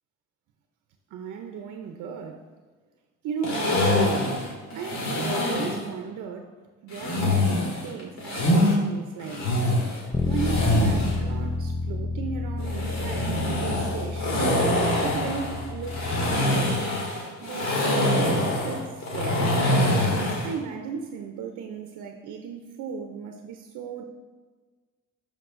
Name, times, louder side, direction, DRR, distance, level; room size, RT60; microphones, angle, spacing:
voice 1, 1.1-2.5 3.2-4.0 4.7-6.5 6.8-9.5 10.3-14.5 15.0-16.7 17.4-19.6 20.4-24.0, right 6 dB, 85° right, 4 dB, 0.7 m, -36 dB
sound 1, 3.4-5.8 6.9-8.7 9.2-11.2 12.6-20.5, left 1 dB, 65° left, 2.4 m, -24 dB
Bass guitar, 10.1-16.4, left 3 dB, 10° left, 0.4 m, -30 dB
11.5 x 5.2 x 2.6 m, 1.4 s
cardioid pair, 90°, 30 cm